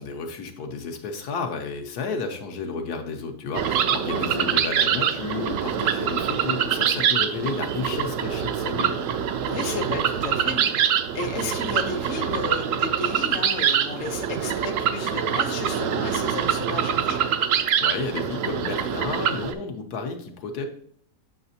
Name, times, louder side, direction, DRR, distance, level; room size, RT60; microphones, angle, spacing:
voice 1, 0.0-9.0 17.8-20.7, left 4 dB, 75° left, 3 dB, 1.3 m, -32 dB
sound 1, 3.5-19.5, right 8 dB, 70° right, 0.8 m, -25 dB
voice 2, 9.5-10.8 11.1-17.3, left 5 dB, 55° left, 3 dB, 0.9 m, -33 dB
7.9 x 5.8 x 2.8 m, 0.62 s
omnidirectional pair, 1.7 m